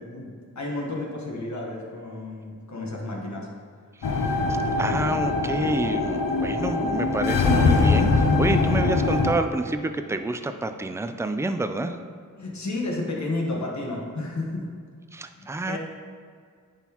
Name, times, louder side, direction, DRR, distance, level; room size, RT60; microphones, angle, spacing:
voice 1, 0.0-3.5 12.4-14.7 15.3-15.8, left 2 dB, 60° left, -2 dB, 1.3 m, -32 dB
sound 1, 4.0-9.3, left 3 dB, 90° left, 0.5 m, -22 dB
voice 2, 4.0-12.0 15.1-15.8, right 2 dB, 10° right, 8 dB, 0.4 m, -28 dB
9.9 x 3.9 x 3.0 m, 2.1 s
cardioid pair, 50°, 33 cm